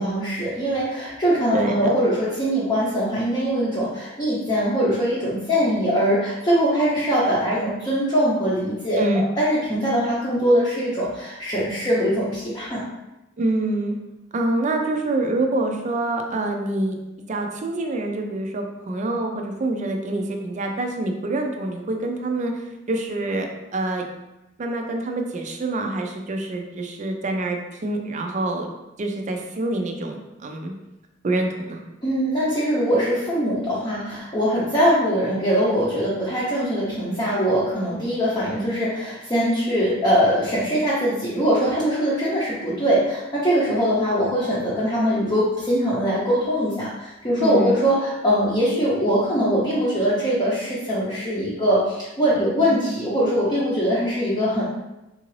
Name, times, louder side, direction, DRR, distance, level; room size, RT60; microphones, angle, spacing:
voice 1, 0.0-9.0 9.4-12.8 32.0-54.6, equal, 20° left, -9 dB, 0.7 m, -22 dB
voice 2, 13.4-14.0 14.3-17.0 17.3-24.0 24.6-28.7 29.0-30.7 31.2-31.8 47.4-47.8 52.6-52.9, right 2 dB, 40° right, 4 dB, 0.4 m, -26 dB
3.7 x 2.5 x 3.1 m, 0.96 s
head